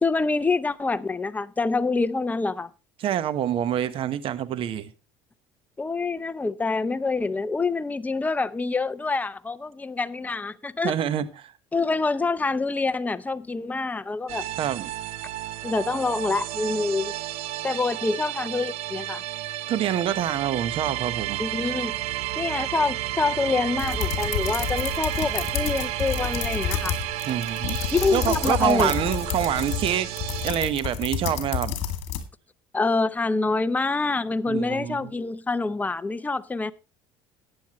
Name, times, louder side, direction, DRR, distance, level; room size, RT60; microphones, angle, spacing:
voice 1, 0.0-2.7 5.8-10.9 11.7-14.5 15.6-17.1 17.6-19.2 21.4-22.0 22.4-27.0 27.9-28.9 32.7-36.7, left 3 dB, 15° left, 0.6 m, -26 dB
voice 2, 3.0-4.9 10.8-11.5 14.6-14.9 19.7-21.4 27.3-30.1 30.4-31.7 34.5-35.1, right 10 dB, 55° right, 1.1 m, -26 dB
sound 1, 14.3-30.5, right 15 dB, 70° right, 0.7 m, -32 dB
sound 2, 23.8-32.2, left 9 dB, 65° left, 2.2 m, -30 dB
14.5 x 9.3 x 3.1 m
supercardioid pair, 105°, 11 cm